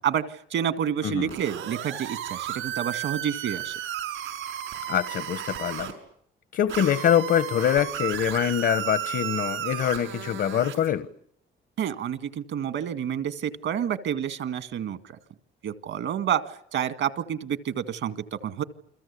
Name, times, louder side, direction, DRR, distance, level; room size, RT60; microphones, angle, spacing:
voice 1, 0.0-3.7 11.8-15.2 15.6-18.6, right 9 dB, 75° right, 11 dB, 2.0 m, -29 dB
sound 1, 1.3-5.9 6.7-10.9, right 10 dB, 90° right, 6.4 m, -33 dB
voice 2, 4.9-5.9 6.5-11.1, left 9 dB, 65° left, 14 dB, 1.3 m, -24 dB
29.0 x 22.0 x 8.5 m, 0.67 s
cardioid pair, 90°, 20 cm